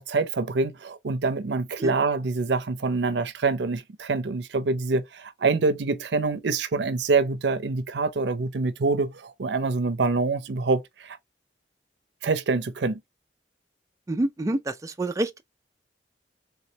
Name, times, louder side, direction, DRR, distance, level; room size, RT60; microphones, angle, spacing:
voice 1, 0.0-11.2 12.2-13.0, right 3 dB, 75° right, 0.5 m, -25 dB
voice 2, 14.1-15.4, right 2 dB, 20° right, 0.3 m, -27 dB
3.5 x 3.1 x 2.7 m
head